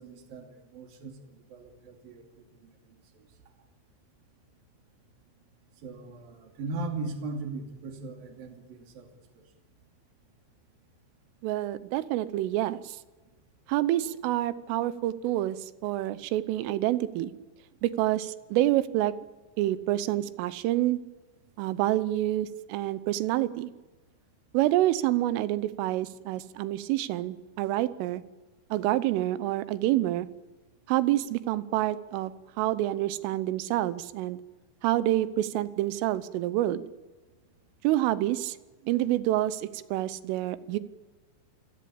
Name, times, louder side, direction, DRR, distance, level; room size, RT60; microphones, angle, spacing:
voice 1, 0.0-3.0 5.8-9.1 9.4-9.5, right 3 dB, 50° right, 5 dB, 4.0 m, -39 dB
voice 2, 11.4-13.0 13.7-17.3 17.8-19.1 19.6-21.0 21.6-23.7 24.5-28.2 28.7-30.3 30.9-32.3 32.6-34.4 34.8-36.9 37.8-38.6 38.9-40.8, right 14 dB, 80° right, 16 dB, 3.4 m, -27 dB
27.0 x 17.0 x 8.6 m, 1.2 s
omnidirectional pair, 5.8 m